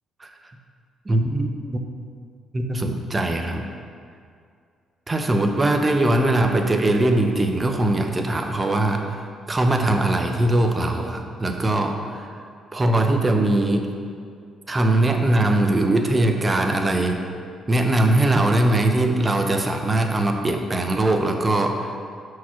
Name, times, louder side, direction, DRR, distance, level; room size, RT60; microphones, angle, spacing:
voice 1, 1.1-1.5 2.5-3.6 5.1-9.2 9.5-12.3 12.7-13.9 14.7-17.2 17.7-21.9, right 1 dB, 25° right, 4 dB, 0.8 m, -21 dB
5.9 x 4.7 x 5.7 m, 2.2 s
cardioid pair, 80°, 0 cm